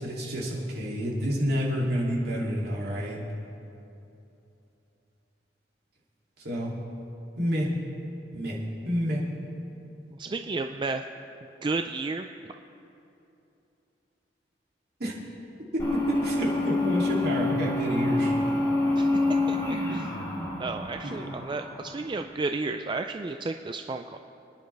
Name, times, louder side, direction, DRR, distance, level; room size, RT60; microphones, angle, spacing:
voice 1, 0.0-3.2 6.4-6.7 7.4-7.8 8.3-9.3 15.0-15.1 15.7-18.4 21.0-21.3, equal, 60° right, -3 dB, 2.8 m, -29 dB
voice 2, 10.2-11.0 11.6-12.3 19.0-19.1 19.5-20.1 20.6-24.2, right 3 dB, 25° right, 6 dB, 0.4 m, -32 dB
sound 1, 15.8-22.2, left 2 dB, 20° left, 3.6 m, -27 dB
28.0 x 10.5 x 3.4 m, 2.8 s
head